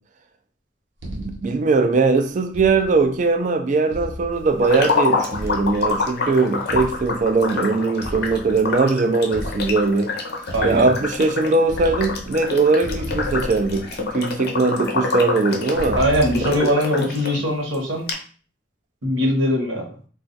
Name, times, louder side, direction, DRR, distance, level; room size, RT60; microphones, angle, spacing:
sound 1, 1.0-1.6 2.5-3.1 3.9-4.7 5.3-6.1 6.7-7.3 8.0-8.8 9.3-10.0 10.5-11.3 11.6-12.5 12.8-14.3 15.8-16.7, equal, 65° right, 0.7 m, -34 dB
voice 1, 1.1-10.1 10.6-16.0 16.4-16.5, right 3 dB, 40° right, 0.3 m, -20 dB
sound 2, 4.6-17.4 17.7-17.8 18.1-18.2, left 4 dB, 55° left, 0.5 m, -27 dB
voice 2, 10.5-10.9 15.9-18.0 19.0-19.9, equal, 90° right, 1.1 m, -21 dB
2.4 x 2.3 x 3.9 m
head